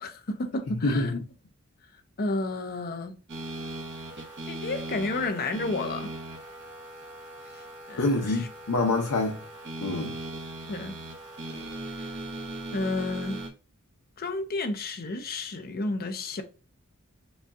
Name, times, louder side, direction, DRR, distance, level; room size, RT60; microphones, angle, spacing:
voice 1, 0.0-1.2 2.2-3.2 4.5-6.1 7.9-8.5 10.7-11.0 12.0-12.1 12.7-13.4 14.2-16.4, left 2 dB, 45° left, 0.6 m, -31 dB
voice 2, 0.7-1.2 8.0-9.4 9.8-10.1, left 2 dB, 75° left, 0.8 m, -26 dB
sound 1, 3.3-13.5, right 1 dB, 55° right, 1.0 m, -39 dB
5.2 x 2.3 x 2.6 m
head